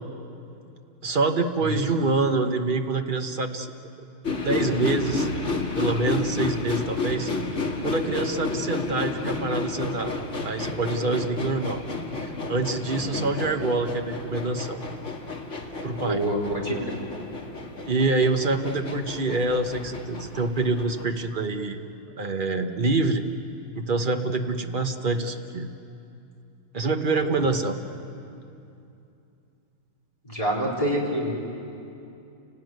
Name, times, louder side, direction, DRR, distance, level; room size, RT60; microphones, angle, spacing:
voice 1, 1.0-3.7 4.3-5.3 5.8-7.3 7.8-10.1 10.4-11.8 12.2-14.8 15.8-16.2 17.9-21.8 22.2-23.2 23.7-25.7 26.7-27.8, right 3 dB, 30° right, 5 dB, 1.0 m, -26 dB
voice 2, 1.6-1.9 12.8-13.2 15.9-17.0 27.2-27.4 30.2-31.3, equal, 15° left, -3 dB, 4.2 m, -28 dB
sound 1, 4.2-21.0, left 3 dB, 35° left, 2.2 m, -31 dB
29.5 x 19.0 x 9.4 m, 2.7 s
omnidirectional pair, 2.2 m